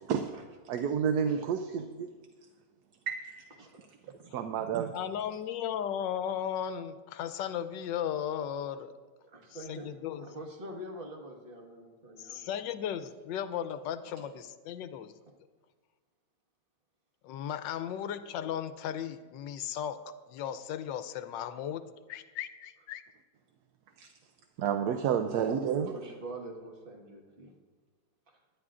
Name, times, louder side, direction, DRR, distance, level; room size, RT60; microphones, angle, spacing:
voice 1, 0.7-2.1 3.1-3.5 4.3-4.9 24.0-24.1 24.6-25.9, right 7 dB, 70° right, 6 dB, 1.1 m, -30 dB
voice 2, 3.6-4.0 4.2-4.3 9.2-12.5 25.9-27.5 28.3-28.4, right 1 dB, 30° right, 1 dB, 1.6 m, -45 dB
voice 3, 4.9-8.9 9.7-10.2 12.2-15.1 17.2-20.0 20.3-21.8 22.1-23.0, left 9 dB, 90° left, 11 dB, 1.3 m, -36 dB
20.5 x 10.0 x 2.5 m, 1.4 s
omnidirectional pair, 1.9 m